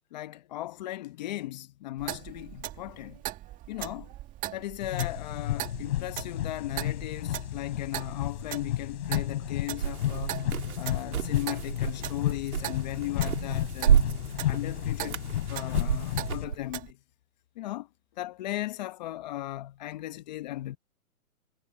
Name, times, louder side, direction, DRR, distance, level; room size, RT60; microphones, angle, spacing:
voice 1, 0.1-3.2 3.7-4.1 4.5-10.5 10.8-14.0 14.5-15.2 15.5-17.0 17.6-17.9 18.2-20.8, left 15 dB, 30° left, 1.0 m, -37 dB
Clock, 2.0-16.9, right 15 dB, 15° right, 1.9 m, -41 dB
sound 1, 4.8-16.4, left 13 dB, 45° left, 4.4 m, -32 dB
sound 2, 9.8-16.5, right 9 dB, 70° right, 3.3 m, -30 dB
hypercardioid pair, 155°, 45 cm